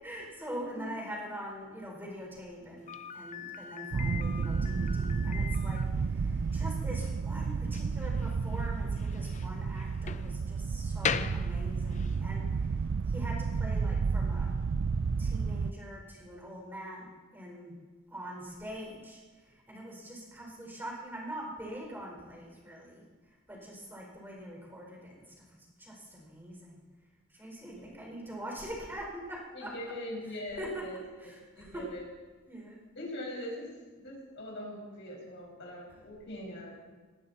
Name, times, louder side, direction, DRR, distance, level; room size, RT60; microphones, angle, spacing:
voice 1, 0.0-12.7 13.1-14.5 15.2-17.7 18.1-19.2 19.5-23.0 23.5-26.8 27.3-29.7 30.6-30.8 31.2-31.8 32.5-32.8, equal, 10° right, -2 dB, 4.8 m, -43 dB
voice 2, 0.6-0.9 27.6-28.2 29.5-32.1 32.9-33.7 34.0-37.0, left 1 dB, 60° left, -2 dB, 5.8 m, -42 dB
Slam, 2.9-12.2, left 7 dB, 35° left, 0.5 m, -40 dB
sound 1, 3.9-15.7, right 5 dB, 60° right, 0.4 m, -31 dB
19.0 x 15.5 x 4.3 m, 1.3 s
head